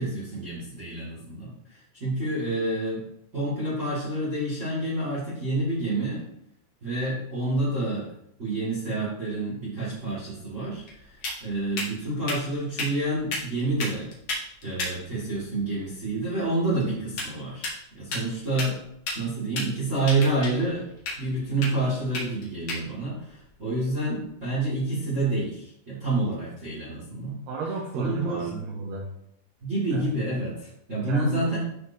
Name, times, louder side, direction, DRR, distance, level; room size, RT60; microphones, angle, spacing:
voice 1, 0.0-1.5 1.9-3.0 3.3-6.3 6.8-8.1 8.4-14.1 14.6-17.7 17.9-18.8 19.1-20.9 21.1-27.4 27.9-28.5 29.6-31.6, right 2 dB, 60° right, -8 dB, 0.7 m, -28 dB
sound 1, 10.2-24.7, left 2 dB, 55° left, 2.3 m, -37 dB
voice 2, 18.1-18.4 27.5-29.1 29.9-30.0 31.0-31.6, right 4 dB, 75° right, -1 dB, 2.5 m, -33 dB
13.0 x 4.4 x 2.8 m, 0.73 s
omnidirectional pair, 5.6 m